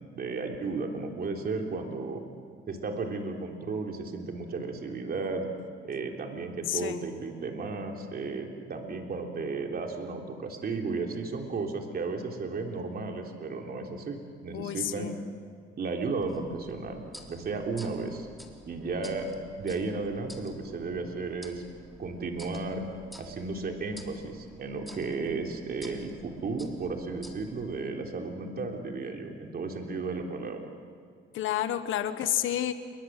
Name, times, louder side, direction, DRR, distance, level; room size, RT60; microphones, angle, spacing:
voice 1, 0.2-2.2 2.7-5.5 5.8-15.2 15.8-18.3 18.7-21.6 22.0-22.8 23.2-30.6, right 3 dB, 50° right, 2 dB, 3.6 m, -34 dB
voice 2, 6.7-7.0 14.5-15.1 31.3-32.7, left 11 dB, 85° left, 10 dB, 1.4 m, -30 dB
sound 1, 16.2-27.8, equal, ahead, 3.8 m, -50 dB
29.0 x 23.5 x 7.7 m, 2.1 s
cardioid pair, 90°, 20 cm